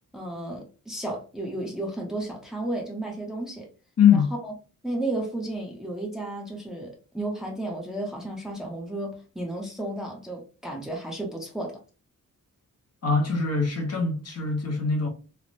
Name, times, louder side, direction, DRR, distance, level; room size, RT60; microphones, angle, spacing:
voice 1, 0.1-3.7 4.1-4.5 4.8-11.8, right 1 dB, ahead, 0.6 m, -33 dB
voice 2, 4.0-4.3 13.0-15.1, left 6 dB, 45° left, 0.7 m, -22 dB
3.2 x 2.1 x 2.5 m
wide cardioid pair, 145°, 34 cm